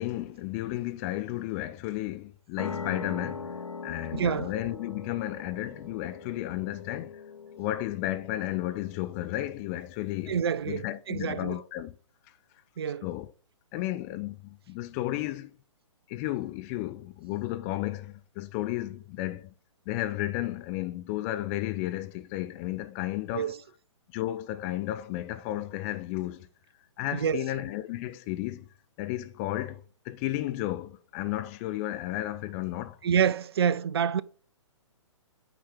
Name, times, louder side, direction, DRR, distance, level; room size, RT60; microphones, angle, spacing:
voice 1, 0.0-3.5 3.8-7.2 7.6-10.4 10.7-11.9 13.0-13.3 13.7-15.5 16.1-19.5 19.9-23.5 24.1-26.5 27.0-28.7 29.0-33.0, left 15 dB, 25° left, 0.6 m, -33 dB
sound 1, 2.6-9.8, left 4 dB, 80° left, 0.7 m, -41 dB
voice 2, 4.1-4.5 10.3-11.6 12.8-13.1 23.3-23.6 27.1-27.4 33.0-34.2, right 7 dB, 55° right, 0.5 m, -27 dB
9.0 x 4.7 x 5.8 m
figure-of-eight pair, 120°, 16 cm